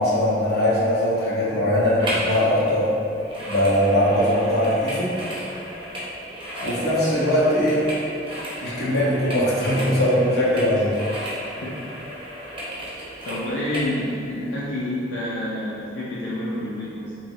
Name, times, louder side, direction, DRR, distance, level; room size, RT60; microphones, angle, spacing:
voice 1, 0.0-2.9 3.5-5.2 6.6-7.9 8.6-10.9, equal, 60° left, -8 dB, 1.0 m, -21 dB
sound 1, 2.0-2.4 2.6-13.9 14.4-14.5, equal, 30° right, 0.7 m, -34 dB
voice 2, 13.2-17.2, left 1 dB, 85° left, -7 dB, 0.4 m, -28 dB
3.6 x 3.0 x 2.7 m, 2.6 s
head